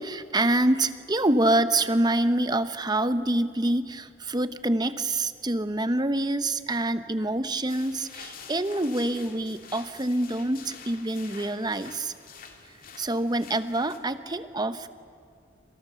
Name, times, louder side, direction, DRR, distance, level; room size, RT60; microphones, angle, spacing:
voice 1, 0.0-12.1 13.0-14.9, right 1 dB, 20° right, 11 dB, 1.0 m, -26 dB
sound 1, 7.7-14.0, left 6 dB, 50° left, 2.7 m, -47 dB
28.5 x 27.0 x 7.1 m, 2.4 s
head